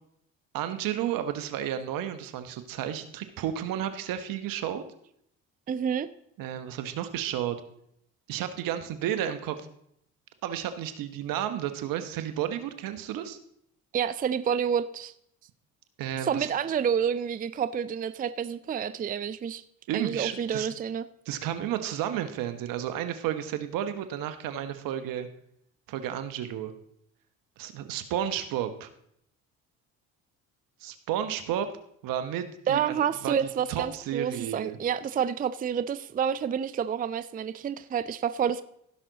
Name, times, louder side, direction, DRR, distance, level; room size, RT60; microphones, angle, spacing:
voice 1, 0.5-4.8 6.4-7.6 8.3-9.6 10.4-13.4 16.0-16.5 19.9-20.7 21.3-25.3 25.9-26.7 27.6-28.9 30.8-31.7 32.0-32.9 33.2-34.8, right 10 dB, 70° right, 10 dB, 1.1 m, -32 dB
voice 2, 5.7-6.1 13.9-15.1 16.2-19.6 19.9-21.1 32.7-38.6, right 8 dB, 25° right, 14 dB, 0.4 m, -29 dB
16.0 x 6.0 x 3.9 m, 0.72 s
supercardioid pair, 70°, 34 cm